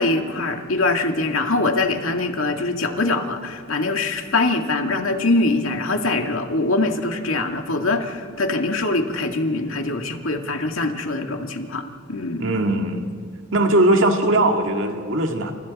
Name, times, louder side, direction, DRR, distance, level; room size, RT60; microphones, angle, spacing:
voice 1, 0.0-11.8 12.1-12.4, left 2 dB, 80° left, 4 dB, 2.1 m, -23 dB
voice 2, 12.4-13.0 13.5-15.5, right 1 dB, 65° right, 3 dB, 2.1 m, -19 dB
29.5 x 28.0 x 4.2 m, 2.3 s
head